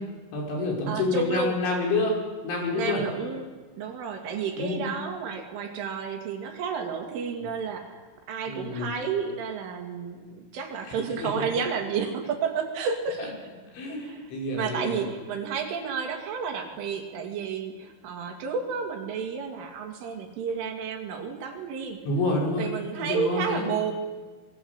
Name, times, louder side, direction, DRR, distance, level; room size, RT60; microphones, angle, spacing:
voice 1, 0.3-3.0 4.6-4.8 7.4-7.5 8.5-8.9 11.2-11.4 13.2-13.3 13.7-15.0 22.1-22.7 23.0-23.7, left 2 dB, 70° left, -1 dB, 7.6 m, -28 dB
voice 2, 0.9-1.6 2.7-3.5 3.8-13.3 13.9-22.0 22.6-23.9, right 6 dB, 75° right, 3 dB, 5.1 m, -31 dB
26.5 x 22.0 x 8.3 m, 1.3 s
omnidirectional pair, 5.6 m